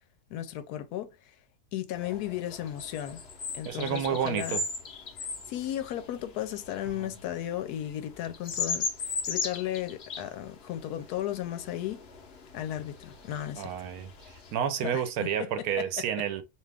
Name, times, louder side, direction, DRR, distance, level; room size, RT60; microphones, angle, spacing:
voice 1, 0.3-1.3 1.7-3.2 3.5-4.6 5.5-12.1 12.5-13.7 14.8-15.0 15.4-15.7, left 12 dB, 90° left, 1.1 m, -35 dB
sound 1, 1.9-14.6, left 4 dB, 55° left, 0.8 m, -38 dB
voice 2, 3.6-4.6 7.0-7.1 13.6-14.1 14.5-16.4, right 9 dB, 75° right, 1.1 m, -30 dB
2.8 x 2.4 x 3.2 m
omnidirectional pair, 1.6 m